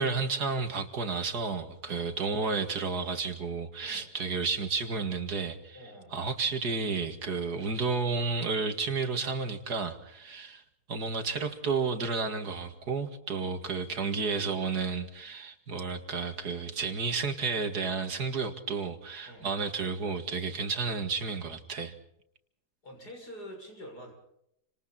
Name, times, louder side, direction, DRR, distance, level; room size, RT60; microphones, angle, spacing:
voice 1, 0.0-5.8 6.1-10.6 10.9-21.9, right 4 dB, 80° right, 7 dB, 2.7 m, -32 dB
voice 2, 5.7-6.2 19.3-19.5 22.8-24.1, equal, 85° left, 2 dB, 7.3 m, -46 dB
29.5 x 26.5 x 4.4 m, 0.76 s
omnidirectional pair, 1.7 m